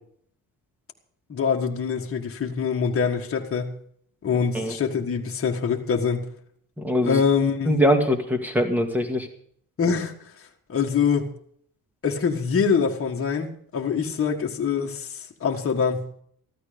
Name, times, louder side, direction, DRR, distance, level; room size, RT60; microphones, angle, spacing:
voice 1, 1.3-3.7 4.2-6.3 7.0-7.7 9.8-10.1 10.7-11.3 12.0-15.1 15.4-16.0, left 6 dB, 35° left, 1.7 m, -24 dB
voice 2, 6.8-7.2 7.7-9.3, equal, 5° right, 2.1 m, -22 dB
14.5 x 13.0 x 5.2 m
cardioid pair, 155°, 36 cm